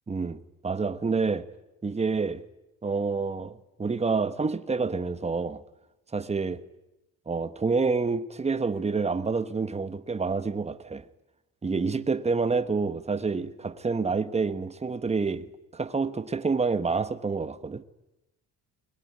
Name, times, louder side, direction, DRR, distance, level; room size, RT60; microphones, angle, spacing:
voice 1, 0.1-1.5 1.8-2.4 2.8-5.6 6.1-6.6 7.3-11.1 11.6-15.5 15.7-17.8, right 4 dB, 15° right, 1.2 m, -28 dB
21.5 x 21.0 x 9.7 m
cardioid pair, 120°, 37 cm